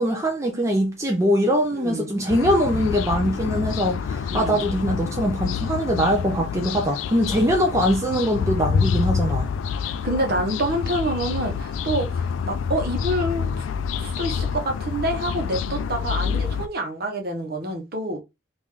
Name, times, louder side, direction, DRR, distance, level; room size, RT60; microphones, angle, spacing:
voice 1, 0.0-9.5, equal, 15° right, 0.5 m, -22 dB
voice 2, 1.7-2.2 4.3-4.6 9.8-13.5 14.0-18.2, right 1 dB, 50° right, 1.0 m, -27 dB
sound 1, 2.3-16.7, left 6 dB, 80° left, 0.3 m, -27 dB
3.6 x 2.6 x 3.2 m
head